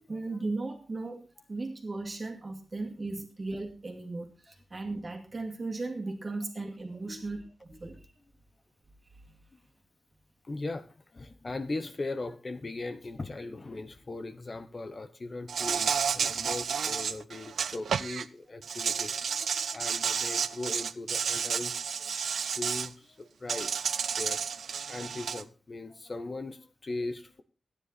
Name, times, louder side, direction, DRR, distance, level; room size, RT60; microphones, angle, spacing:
voice 1, 0.1-8.1, right 3 dB, 30° right, 3 dB, 2.4 m, -37 dB
voice 2, 10.4-10.8 11.1-22.2 22.6-23.9 24.2-27.4, left 2 dB, 30° left, 10 dB, 1.0 m, -39 dB
Insect, 15.5-18.2 18.6-22.9 23.5-25.4, right 7 dB, 80° right, 0.5 m, -31 dB
12.5 x 9.9 x 4.2 m, 0.34 s
wide cardioid pair, 145°, 0 cm